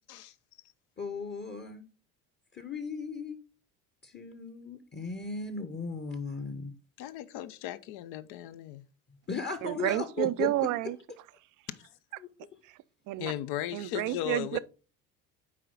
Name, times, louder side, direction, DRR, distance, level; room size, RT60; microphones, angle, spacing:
voice 1, 1.0-1.8 2.5-3.4 4.0-6.7 9.3-10.7 12.2-12.3, left 4 dB, 25° left, 1.0 m, -36 dB
voice 2, 7.0-8.8 11.8-11.9 13.2-14.6, left 13 dB, 60° left, 0.8 m, -37 dB
voice 3, 9.6-11.0 12.6-13.3 13.7-14.6, right 16 dB, 45° right, 0.5 m, -31 dB
7.6 x 4.8 x 3.9 m
hypercardioid pair, 65°, 43 cm